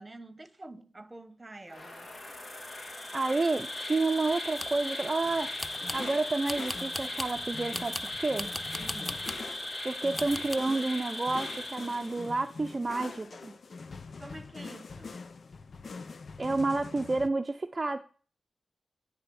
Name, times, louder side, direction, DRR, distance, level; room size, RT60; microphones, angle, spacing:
voice 1, 0.0-2.1 8.8-9.2 14.2-15.2, right 2 dB, 25° right, 1.1 m, -47 dB
Insect, 1.7-12.5, left 1 dB, 45° left, 2.5 m, -38 dB
voice 2, 3.1-5.5 5.9-8.5 9.8-13.5 16.4-18.0, right 3 dB, 40° right, 0.6 m, -30 dB
sound 1, 4.3-4.8 5.6-6.1 6.5-7.4 7.7-9.5 10.2-10.6, left 1 dB, 15° left, 0.5 m, -39 dB
sound 2, 5.2-17.3, left 4 dB, 65° left, 0.6 m, -45 dB
9.9 x 3.5 x 7.0 m
cardioid pair, 50°, 0 cm